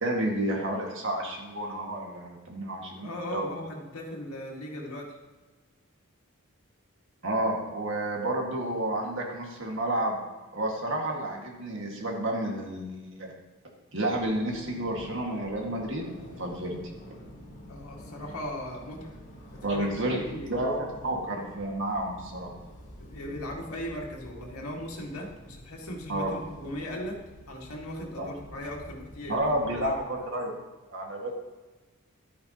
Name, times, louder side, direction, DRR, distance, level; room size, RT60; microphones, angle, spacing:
voice 1, 0.0-3.5 7.2-10.2 10.5-13.3 13.9-16.8 19.6-20.2 20.5-22.5 26.1-26.3 28.2-28.3 29.3-30.5 30.9-31.3, right 1 dB, 60° right, 0 dB, 1.9 m, -30 dB
voice 2, 3.0-5.2 17.7-19.2 19.5-20.6 23.0-27.2 27.5-30.0, left 1 dB, 90° left, -1 dB, 2.0 m, -38 dB
sound 1, 14.1-30.0, equal, 35° left, 3.7 m, -48 dB
11.5 x 9.5 x 3.0 m, 1.2 s
head